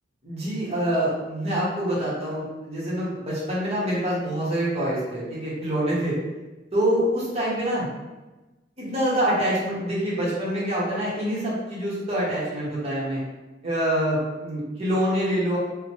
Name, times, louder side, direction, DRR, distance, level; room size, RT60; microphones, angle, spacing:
voice 1, 0.2-6.2 6.7-7.9 8.8-13.2 13.6-15.6, equal, 35° right, -7 dB, 0.9 m, -26 dB
2.8 x 2.1 x 2.9 m, 1.1 s
head